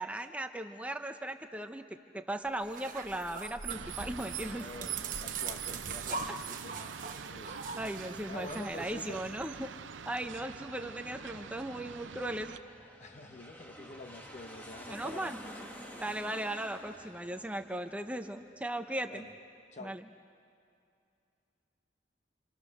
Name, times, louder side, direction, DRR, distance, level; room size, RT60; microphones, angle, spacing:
voice 1, 0.0-1.8 2.1-4.6 7.8-9.7 10.1-12.5 13.8-13.9 14.8-15.4 16.0-19.3 19.8-20.0, right 1 dB, 5° right, 6 dB, 0.7 m, -37 dB
sound 1, 2.6-9.6, right 6 dB, 45° right, 1.1 m, -41 dB
sound 2, 3.7-12.6, right 6 dB, 80° right, 0.6 m, -46 dB
voice 2, 4.6-7.6 8.3-9.2 13.0-15.7 19.1-19.3 19.7-20.0, left 2 dB, 35° left, 8 dB, 1.0 m, -47 dB
Aircraft, 8.3-19.0, equal, 10° left, 1.9 m, -52 dB
28.5 x 27.0 x 6.6 m, 2.5 s
head